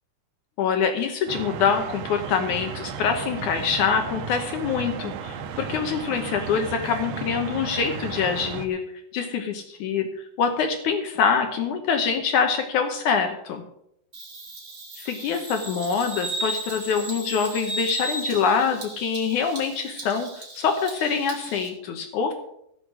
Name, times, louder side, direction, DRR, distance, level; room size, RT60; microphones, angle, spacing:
voice 1, 0.6-8.8 9.1-13.6 15.0-22.3, left 6 dB, 80° left, 5 dB, 1.7 m, -25 dB
sound 1, 1.3-8.7, right 6 dB, 75° right, 3.1 m, -34 dB
Bird vocalization bird call bird song, 14.1-21.7, right 2 dB, 25° right, 2.1 m, -35 dB
16.5 x 6.5 x 6.3 m, 0.76 s
omnidirectional pair, 5.1 m